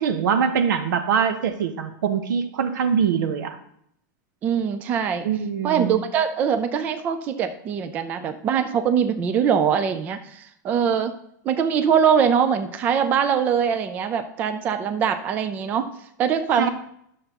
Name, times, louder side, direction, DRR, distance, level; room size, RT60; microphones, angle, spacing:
voice 1, 0.0-3.6 5.2-5.9 16.6-16.7, right 7 dB, 80° right, 9 dB, 1.0 m, -23 dB
voice 2, 4.4-5.3 5.6-11.1 11.5-15.9 16.2-16.7, right 7 dB, 15° right, 9 dB, 0.3 m, -22 dB
11.0 x 6.7 x 2.9 m, 0.72 s
supercardioid pair, 175°, 10 cm